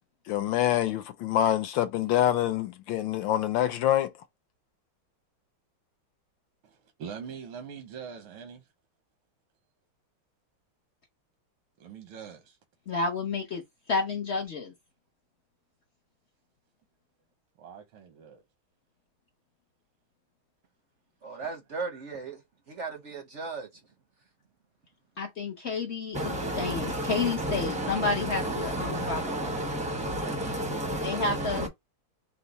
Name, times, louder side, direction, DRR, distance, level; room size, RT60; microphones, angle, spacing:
voice 1, 0.3-4.1, left 12 dB, 75° left, 1.2 m, -26 dB
voice 2, 6.6-8.7 11.8-12.6 17.6-18.4, right 7 dB, 85° right, 1.8 m, -43 dB
voice 3, 12.9-13.6 13.9-14.7 25.2-29.5 31.0-31.7, left 4 dB, 60° left, 0.7 m, -31 dB
voice 4, 21.2-23.8, right 4 dB, 60° right, 0.7 m, -37 dB
voice 5, 26.1-31.7, right 1 dB, 10° right, 0.4 m, -31 dB
5.6 x 2.1 x 3.9 m
omnidirectional pair, 2.3 m